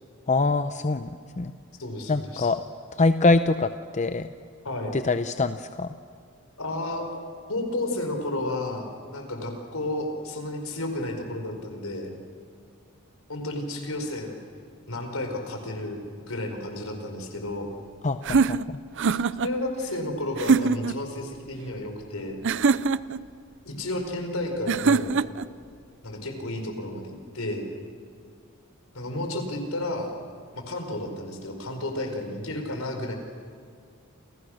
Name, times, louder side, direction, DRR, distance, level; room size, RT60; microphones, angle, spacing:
voice 1, 0.3-1.1 1.4-1.5 2.1-2.6 3.0-4.3 4.9-5.9 18.0-18.8, left 3 dB, 35° left, 10 dB, 0.7 m, -24 dB
voice 2, 1.8-2.5 4.6-4.9 6.6-7.1 7.5-12.1 13.3-14.4 14.9-17.7 19.1-22.4 23.6-25.1 26.0-27.6 28.9-30.1 30.5-33.1, left 1 dB, 75° left, 4 dB, 4.8 m, -32 dB
sound 1, 18.2-19.5 20.4-21.0 22.4-23.2 24.7-25.5, right 5 dB, 60° right, 0.6 m, -23 dB
29.0 x 28.0 x 6.5 m, 2.2 s
head